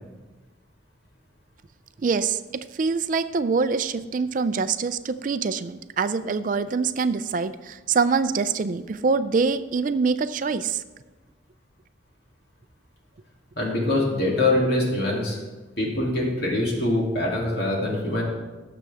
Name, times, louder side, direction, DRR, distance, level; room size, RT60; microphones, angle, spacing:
voice 1, 2.0-2.4 2.7-10.8, right 5 dB, 45° right, 12 dB, 0.4 m, -24 dB
voice 2, 13.6-15.4 15.8-18.2, left 2 dB, 55° left, -3 dB, 2.7 m, -24 dB
18.0 x 6.9 x 3.5 m, 1.3 s
head